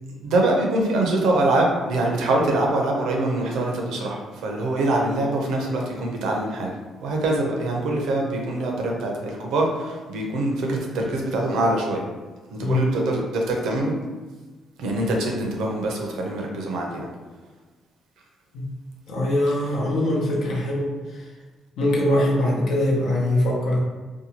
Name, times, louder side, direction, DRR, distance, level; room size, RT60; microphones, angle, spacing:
voice 1, 0.1-6.7 7.0-12.1 12.5-13.9 14.8-17.1, right 2 dB, 80° right, 0 dB, 0.6 m, -24 dB
voice 2, 19.1-21.3 21.8-23.8, left 1 dB, 75° left, -3 dB, 0.7 m, -22 dB
2.7 x 2.2 x 2.8 m, 1.3 s
cardioid pair, 90°, 0 cm